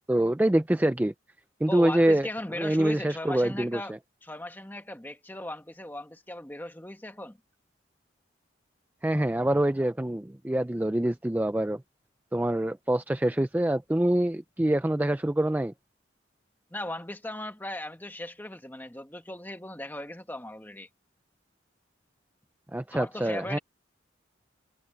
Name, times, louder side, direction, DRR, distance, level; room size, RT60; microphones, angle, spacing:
voice 1, 0.1-1.1 1.6-2.3 2.6-4.0 9.0-11.8 12.3-15.7 22.7-23.6, right 1 dB, 10° right, 0.3 m, -25 dB
voice 2, 1.7-3.9 4.2-7.4 16.7-20.9 22.9-23.6, left 1 dB, 10° left, 1.4 m, -38 dB
head